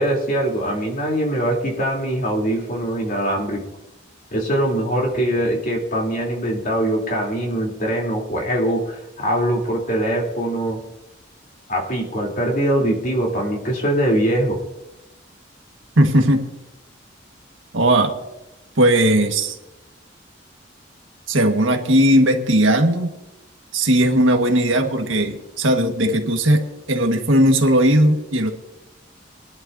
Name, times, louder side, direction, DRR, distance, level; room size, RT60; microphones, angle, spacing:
voice 1, 0.0-3.6 4.3-10.8 11.7-14.6, right 1 dB, 45° left, -1 dB, 3.4 m, -22 dB
voice 2, 16.0-16.5 17.7-18.2 18.8-19.6 21.3-23.1 23.7-28.5, right 1 dB, 90° right, 4 dB, 1.7 m, -17 dB
22.5 x 11.0 x 2.8 m, 0.96 s
head